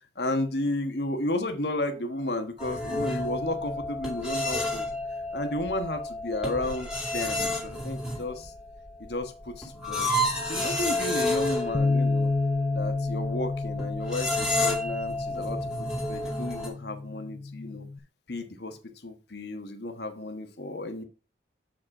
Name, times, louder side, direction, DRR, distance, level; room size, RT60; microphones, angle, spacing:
voice 1, 0.1-4.9 5.3-6.9 7.1-8.5 9.0-10.1 10.4-12.3 12.7-15.7 16.0-17.9 18.3-21.0, left 1 dB, 65° left, 6 dB, 1.3 m, -33 dB
sound 1, 2.6-16.7, left 1 dB, 5° right, 2.3 m, -31 dB
Bass guitar, 11.7-18.0, left 3 dB, 25° left, 0.8 m, -30 dB
7.2 x 5.1 x 4.9 m, 0.35 s
head